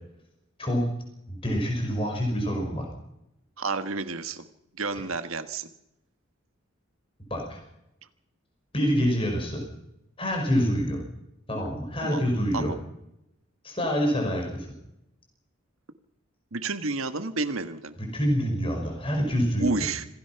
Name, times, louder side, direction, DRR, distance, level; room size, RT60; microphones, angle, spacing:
voice 1, 1.3-2.9 7.3-7.6 8.7-9.6 10.2-11.0 11.5-12.7 13.6-14.7 18.0-19.9, equal, 25° left, 2 dB, 5.0 m, -26 dB
voice 2, 3.6-4.4 4.8-5.7 12.0-12.2 12.5-12.8 16.5-18.0 19.6-20.0, right 3 dB, 80° right, 9 dB, 1.5 m, -30 dB
26.5 x 16.5 x 5.9 m, 0.85 s
head